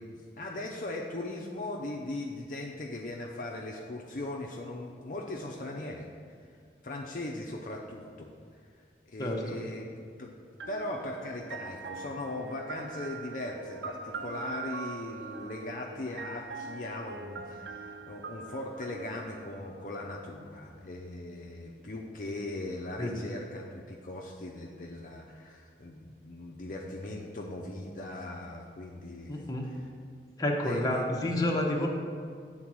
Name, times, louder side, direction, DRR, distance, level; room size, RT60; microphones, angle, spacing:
voice 1, 0.0-6.1 6.8-8.3 9.1-9.9 10.2-10.3 10.7-29.8 30.6-31.1, left 2 dB, 45° left, -1 dB, 0.5 m, -39 dB
sound 1, 10.6-20.4, right 5 dB, 75° right, 0.4 m, -43 dB
voice 2, 29.3-29.6 30.4-31.9, left 1 dB, 20° left, -1 dB, 0.8 m, -29 dB
8.8 x 3.9 x 6.1 m, 2.1 s
head